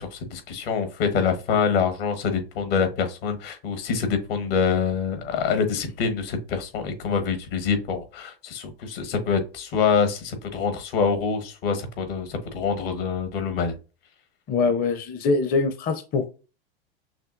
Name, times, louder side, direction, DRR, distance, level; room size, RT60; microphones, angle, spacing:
voice 1, 0.0-13.7, left 5 dB, 65° left, 1.4 m, -25 dB
voice 2, 14.5-16.3, left 4 dB, 30° left, 0.6 m, -23 dB
5.9 x 2.6 x 2.5 m
hypercardioid pair, 110°, 30 cm